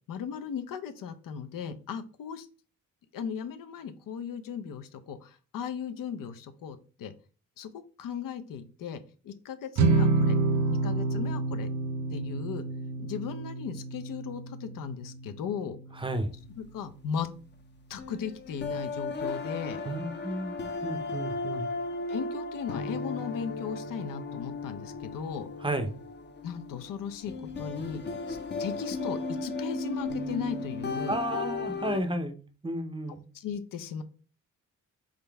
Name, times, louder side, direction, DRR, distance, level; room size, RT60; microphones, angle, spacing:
voice 1, 0.1-2.5 3.1-7.1 7.6-7.7 8.0-10.4 10.8-11.7 12.1-12.6 13.0-15.8 16.6-17.3 17.9-19.8 22.1-25.5 26.4-28.0 28.3-31.2 33.3-34.0, left 7 dB, 85° left, 9 dB, 0.7 m, -37 dB
sound 1, 9.8-16.2, right 3 dB, 60° right, 0.6 m, -29 dB
voice 2, 15.9-16.3 19.8-21.7 25.6-25.9 31.1-32.4 32.6-33.2, right 1 dB, 15° right, 8 dB, 0.5 m, -32 dB
sound 2, 18.0-32.0, left 3 dB, 35° left, 0.6 m, -35 dB
4.2 x 3.8 x 3.4 m, 0.37 s
cardioid pair, 130°, 32 cm